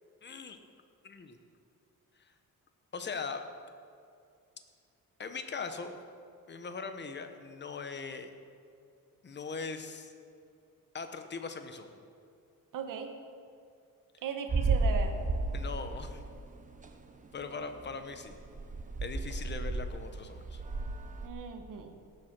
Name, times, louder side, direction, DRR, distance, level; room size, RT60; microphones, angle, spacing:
voice 1, 0.2-0.6 1.0-1.4 2.2-2.3 2.9-3.4 5.2-6.0 6.5-8.3 9.2-10.1 10.9-12.0 15.5-16.2 17.3-18.3 19.0-20.6, left 4 dB, 30° left, 8 dB, 1.0 m, -40 dB
voice 2, 12.7-13.1 14.2-15.1 21.2-21.9, right 6 dB, 65° right, 5 dB, 1.1 m, -37 dB
sound 1, 14.5-16.4 16.7-16.9 17.4-17.5 17.8-18.0 18.3-21.3, right 3 dB, 25° right, 0.8 m, -32 dB
17.5 x 7.9 x 6.0 m, 2.4 s
cardioid pair, 145°, 34 cm